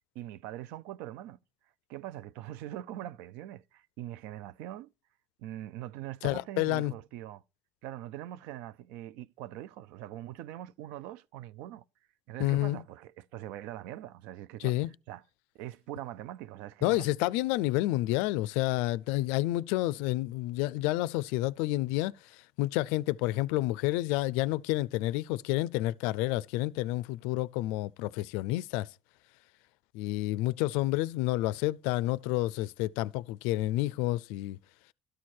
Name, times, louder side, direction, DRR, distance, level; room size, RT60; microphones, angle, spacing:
voice 1, 0.2-1.4 1.9-4.9 5.4-7.4 7.8-11.8 12.3-14.7 15.1-15.2 15.5-17.1, right 13 dB, 85° right, 0.4 m, -42 dB
voice 2, 6.2-6.9 12.4-12.8 14.6-14.9 16.8-28.9 29.9-34.6, left 17 dB, 90° left, 0.3 m, -29 dB
12.5 x 4.7 x 4.3 m
cardioid pair, 110°, 2 cm